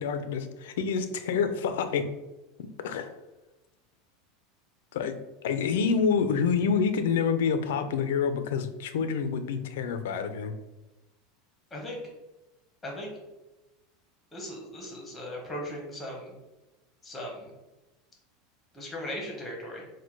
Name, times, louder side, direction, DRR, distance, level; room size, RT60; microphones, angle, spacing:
voice 1, 0.0-2.1 2.8-3.1 4.9-5.2 5.4-10.5, left 6 dB, 85° left, 9 dB, 0.4 m, -27 dB
voice 2, 14.3-16.4 17.0-17.5 18.7-19.8, left 1 dB, 10° left, -1 dB, 0.9 m, -38 dB
4.3 x 2.2 x 4.5 m, 1.0 s
supercardioid pair, 175°, 0 cm